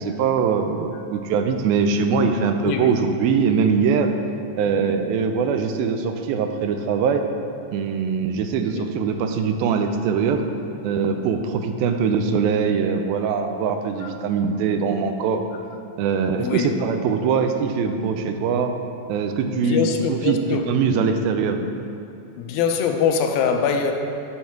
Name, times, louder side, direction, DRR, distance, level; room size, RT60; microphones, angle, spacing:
voice 1, 0.0-4.1 4.6-7.2 7.7-10.5 10.8-15.4 16.0-18.7 19.1-21.6, right 6 dB, 90° right, 6 dB, 2.4 m, -22 dB
voice 2, 2.6-3.0 8.7-8.9 14.0-14.1 16.4-16.7 19.5-20.7 22.4-23.9, left 7 dB, 85° left, 5 dB, 2.4 m, -23 dB
7.3 x 6.4 x 5.8 m, 2.6 s
omnidirectional pair, 4.2 m